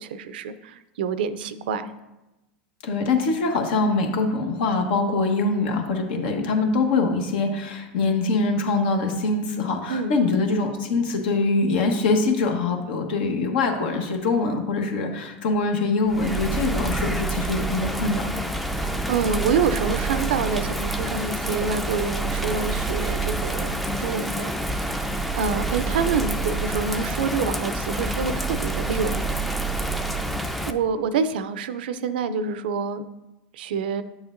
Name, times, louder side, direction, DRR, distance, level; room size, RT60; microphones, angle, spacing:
voice 1, 0.0-1.9 9.9-10.1 18.7-24.5 25.4-29.2 30.7-33.0 33.5-34.0, right 5 dB, 75° right, 13 dB, 0.5 m, -27 dB
voice 2, 2.8-18.4, left 3 dB, 70° left, 3 dB, 1.2 m, -23 dB
Bird vocalization bird call bird song / Rain, 16.1-30.7, right 2 dB, ahead, 0.4 m, -27 dB
8.8 x 7.0 x 2.5 m, 1.0 s
hypercardioid pair, 105°, 5 cm